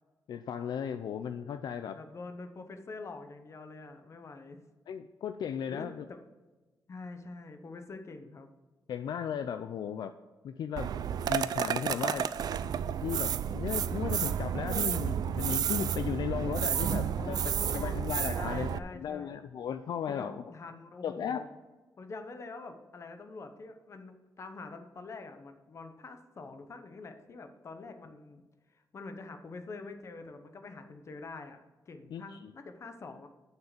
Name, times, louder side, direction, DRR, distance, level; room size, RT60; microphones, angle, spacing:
voice 1, 0.3-2.0 4.9-6.0 8.9-10.1 10.4-10.9 11.3-12.3 12.9-17.4 17.7-20.4 21.0-21.4 32.1-32.5, left 8 dB, 75° left, 10 dB, 0.4 m, -36 dB
voice 2, 1.9-4.6 5.7-6.2 6.9-8.5 16.7-18.1 18.3-19.3 20.1-21.5 22.0-28.4 28.7-33.3, left 3 dB, 40° left, 7 dB, 0.9 m, -45 dB
sound 1, 10.8-18.8, right 8 dB, 65° right, 0.4 m, -31 dB
7.2 x 6.5 x 6.8 m, 1.2 s
wide cardioid pair, 155°, 7 cm